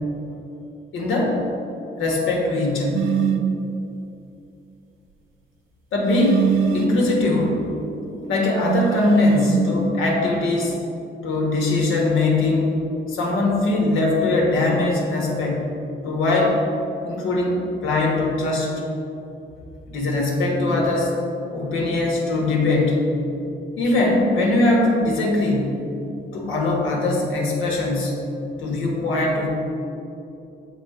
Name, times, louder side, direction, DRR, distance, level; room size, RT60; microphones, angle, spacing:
voice 1, 0.9-1.4 2.0-3.1 5.9-7.7 8.0-10.8 11.2-12.8 13.1-15.7 16.0-16.6 17.0-18.7 19.9-21.1 21.5-23.0 23.8-25.7 26.3-28.1 28.6-29.5, left 2 dB, 85° left, -2 dB, 1.4 m, -21 dB
sound 1, 2.9-3.6 6.1-7.0 8.6-9.7, right 8 dB, 85° right, 0.4 m, -22 dB
6.8 x 3.7 x 4.8 m, 2.8 s
cardioid pair, 90°, 20 cm